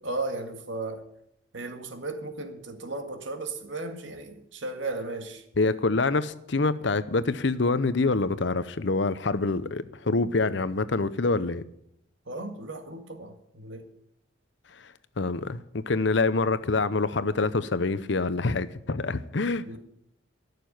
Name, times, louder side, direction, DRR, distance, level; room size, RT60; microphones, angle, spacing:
voice 1, 0.0-1.1 1.5-5.5 12.3-13.9 19.6-19.8, right 2 dB, 70° right, 1.8 m, -35 dB
voice 2, 5.6-11.6 15.2-19.8, left 3 dB, 65° left, 0.7 m, -26 dB
14.0 x 6.9 x 9.3 m
head